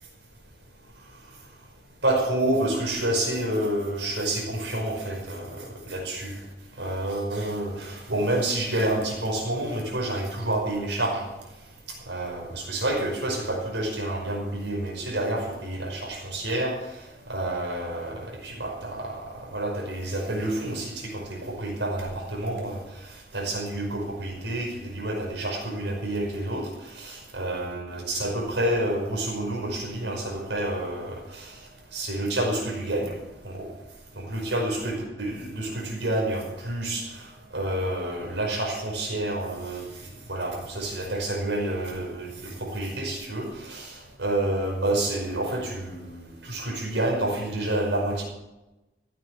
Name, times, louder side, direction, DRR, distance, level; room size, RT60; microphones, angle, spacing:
voice 1, 2.0-6.4 6.8-11.2 12.1-16.7 17.3-22.8 23.3-26.7 26.9-31.5 31.9-33.1 33.4-33.7 34.2-37.2 37.5-39.8 40.3-48.2, right 1 dB, 80° right, 0 dB, 5.4 m, -29 dB
15.0 x 9.3 x 8.0 m, 1.0 s
head